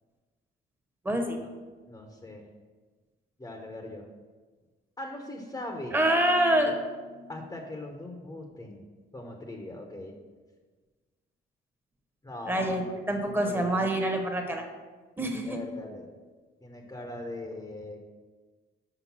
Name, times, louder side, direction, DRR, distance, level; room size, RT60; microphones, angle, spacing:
voice 1, 1.0-1.4 5.9-7.2 12.5-12.8 13.1-14.6 15.2-15.6, right 1 dB, 10° right, 2 dB, 1.2 m, -26 dB
voice 2, 1.9-2.4 3.4-4.0 5.0-5.9 7.3-8.8 9.1-10.1 12.2-12.9 13.3-13.7 15.4-16.1 16.6-18.0, left 1 dB, 20° left, 2 dB, 1.0 m, -40 dB
6.0 x 5.1 x 5.9 m, 1.4 s
cardioid pair, 90°, 20 cm